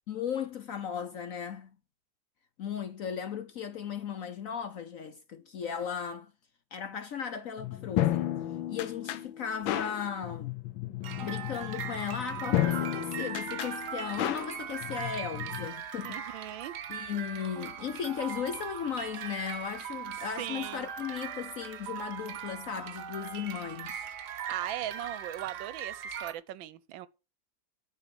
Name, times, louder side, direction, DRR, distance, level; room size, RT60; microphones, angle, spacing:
voice 1, 0.1-1.7 2.6-6.3 6.7-8.3 8.7-10.5 11.2-16.5 16.9-24.1, left 8 dB, 60° left, 0.9 m, -36 dB
sound 1, 7.6-15.7, left 13 dB, 85° left, 1.5 m, -33 dB
sound 2, 11.0-26.3, right 8 dB, 60° right, 1.5 m, -40 dB
voice 2, 16.0-16.8 20.4-20.9 24.3-27.1, right 13 dB, 80° right, 1.4 m, -39 dB
11.0 x 5.2 x 6.8 m
omnidirectional pair, 2.1 m